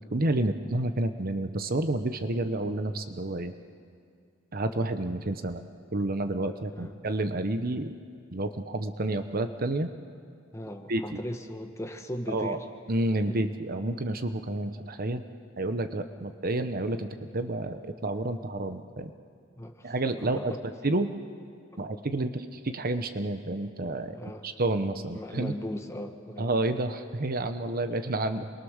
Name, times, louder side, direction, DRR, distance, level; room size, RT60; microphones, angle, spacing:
voice 1, 0.1-3.5 4.5-5.6 5.9-7.9 8.3-9.9 10.9-11.0 12.3-12.6 12.9-15.2 15.6-19.1 19.8-20.5 20.8-21.1 21.8-24.2 24.4-25.5 26.4-28.5, right 2 dB, 45° right, 8 dB, 1.0 m, -29 dB
voice 2, 10.5-12.6 13.2-13.4 19.6-20.6 22.2-22.3 24.1-24.5 25.1-26.5, equal, 15° left, 5 dB, 1.3 m, -38 dB
28.5 x 22.5 x 6.5 m, 2.2 s
head